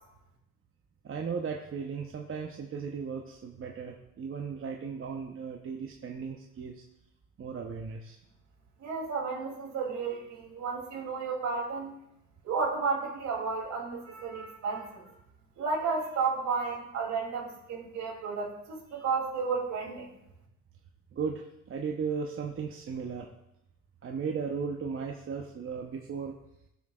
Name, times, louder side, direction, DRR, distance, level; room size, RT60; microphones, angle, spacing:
voice 1, 1.0-6.7 7.4-8.2 15.1-15.2 21.1-23.3 24.0-26.4, right 5 dB, 45° right, 2 dB, 0.8 m, -36 dB
voice 2, 8.8-11.9 12.4-15.0 15.6-20.1, right 4 dB, 70° right, -1 dB, 2.9 m, -32 dB
18.0 x 6.2 x 2.4 m, 0.83 s
cardioid pair, 90°, 30 cm